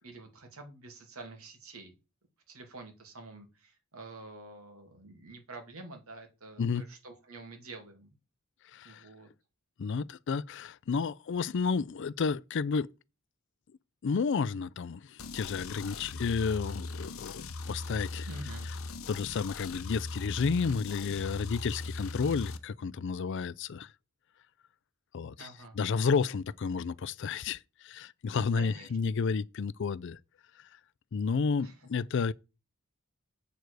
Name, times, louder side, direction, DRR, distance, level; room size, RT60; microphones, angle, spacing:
voice 1, 0.0-1.9 2.5-8.2 8.8-9.3 18.2-18.7 25.4-25.8 28.6-28.9 31.6-31.9, right 2 dB, 85° right, 2.4 m, -48 dB
voice 2, 8.7-9.0 9.8-12.9 14.0-18.3 19.1-23.9 25.1-25.5 25.7-30.2 31.1-32.3, left 5 dB, 55° left, 0.4 m, -31 dB
sound 1, 15.2-22.6, left 3 dB, 70° left, 0.8 m, -40 dB
7.9 x 6.9 x 4.7 m
head